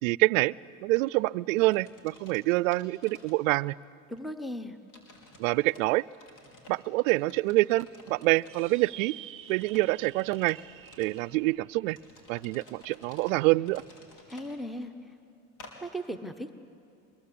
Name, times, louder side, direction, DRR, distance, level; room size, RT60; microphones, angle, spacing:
voice 1, 0.0-0.5 0.8-3.7 5.4-6.1 6.7-9.2 9.5-10.6 11.0-12.0 12.3-13.8, right 21 dB, 75° right, 22 dB, 0.6 m, -26 dB
sound 1, 0.9-1.1 1.5-3.8 4.2-4.3 4.9-5.8 6.1-8.9 9.4-11.3 11.9-14.5 15.6-15.7, left 1 dB, 60° left, 4.9 m, -53 dB
voice 2, 4.1-4.8 14.3-15.1 15.8-16.5, equal, ahead, 10 dB, 1.0 m, -37 dB
sound 2, 8.5-13.2, right 13 dB, 30° right, 0.7 m, -49 dB
24.0 x 22.0 x 8.7 m, 2.5 s
supercardioid pair, 100°, 40 cm